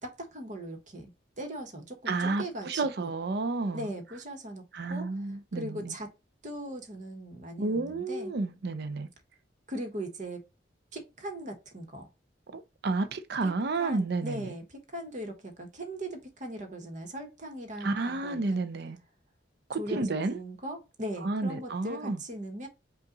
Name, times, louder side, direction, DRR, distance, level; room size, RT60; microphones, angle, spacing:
voice 1, 0.0-1.1 1.4-3.1 3.7-5.1 5.6-6.1 6.4-8.3 9.7-10.4 10.9-12.1 13.8-18.6 19.8-22.7, right 1 dB, 45° right, 1.3 m, -39 dB
voice 2, 2.1-3.9 4.7-6.0 7.6-9.1 12.5-14.5 17.8-19.0 19.7-20.4 21.2-22.2, right 3 dB, 60° right, 0.5 m, -31 dB
5.4 x 2.5 x 3.9 m
head